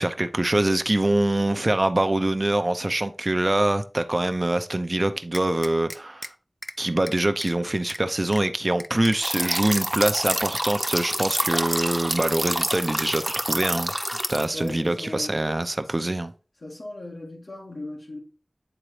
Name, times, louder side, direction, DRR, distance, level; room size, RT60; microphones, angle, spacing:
voice 1, 0.0-6.3 6.8-13.9 14.3-16.3, right 1 dB, 40° right, 0.6 m, -24 dB
sound 1, 5.3-6.3 6.6-6.7 7.1-7.5 7.9-8.0 8.3-8.4 8.8-9.8 10.2-10.9, left 1 dB, 20° left, 0.4 m, -38 dB
sound 2, 9.2-14.7, equal, 10° right, 0.8 m, -27 dB
voice 2, 14.5-15.4 16.6-18.2, left 2 dB, 85° left, 1.7 m, -37 dB
8.9 x 3.9 x 3.2 m
wide cardioid pair, 45°, 0 cm